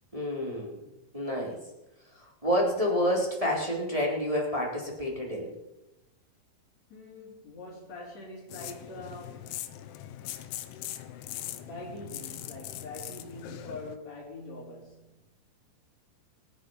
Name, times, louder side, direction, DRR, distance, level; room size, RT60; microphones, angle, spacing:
voice 1, 0.1-0.8 1.1-1.6 2.1-5.5, equal, 10° right, 3.1 m, -29 dB
voice 2, 6.9-9.6 11.6-15.2, left 2 dB, 35° left, 4.9 m, -44 dB
sound 1, 8.5-14.0, left 12 dB, 90° left, 3.4 m, -41 dB
27.0 x 9.4 x 5.7 m
omnidirectional pair, 5.4 m